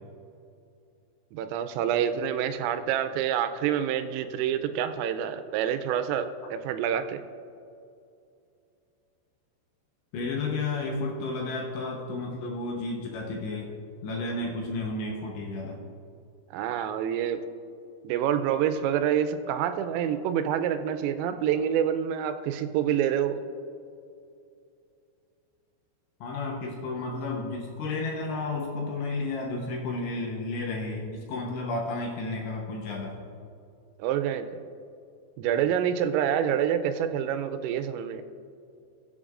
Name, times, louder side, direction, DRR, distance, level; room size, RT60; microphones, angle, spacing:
voice 1, 1.3-7.2 16.5-17.4 18.0-23.4 34.0-34.5 35.4-38.2, right 9 dB, 90° right, 8 dB, 3.3 m, -27 dB
voice 2, 10.1-13.7 14.0-15.8 26.2-33.2, left 3 dB, 75° left, 0 dB, 2.8 m, -32 dB
22.0 x 8.0 x 2.5 m, 2.5 s
omnidirectional pair, 5.8 m